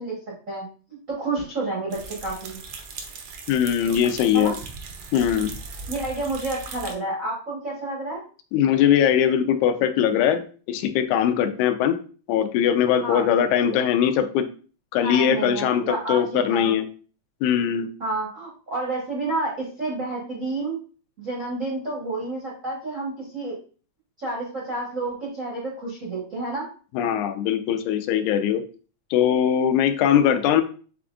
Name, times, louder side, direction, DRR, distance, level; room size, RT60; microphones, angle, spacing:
voice 1, 0.0-2.6 4.3-4.5 5.9-8.2 13.0-13.4 13.6-13.8 15.0-16.7 18.0-20.8 21.2-23.5 24.2-26.7, right 2 dB, 70° right, -4 dB, 0.7 m, -30 dB
sound 1, 1.9-6.9, right 4 dB, 90° right, 1.1 m, -38 dB
voice 2, 3.5-4.5 5.1-5.5 8.5-12.0 12.3-14.5 14.9-16.9 17.4-17.9 26.9-28.6 29.1-30.6, left 9 dB, 90° left, 8 dB, 2.0 m, -21 dB
5.8 x 3.6 x 2.4 m, 0.39 s
omnidirectional pair, 3.4 m